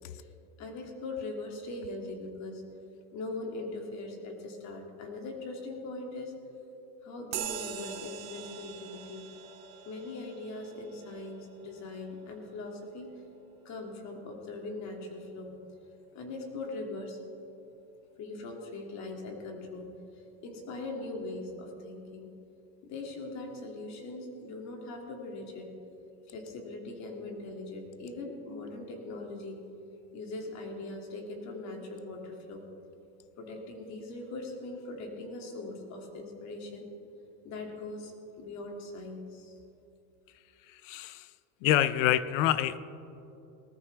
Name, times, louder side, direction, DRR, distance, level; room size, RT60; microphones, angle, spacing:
voice 1, 0.1-2.6 3.1-6.3 7.0-9.3 9.8-13.1 13.6-15.6 16.1-17.2 18.2-22.3 22.8-25.7 26.3-29.6 30.1-32.7 33.4-36.9 37.4-38.1 38.4-39.5, left 2 dB, 40° left, 1 dB, 2.6 m, -41 dB
sound 1, 7.3-15.2, right 9 dB, 50° right, 1.5 m, -44 dB
voice 2, 40.7-41.3 41.6-42.8, left 12 dB, 70° left, 16 dB, 0.7 m, -26 dB
19.5 x 13.5 x 3.4 m, 2.7 s
supercardioid pair, 150°, 40 cm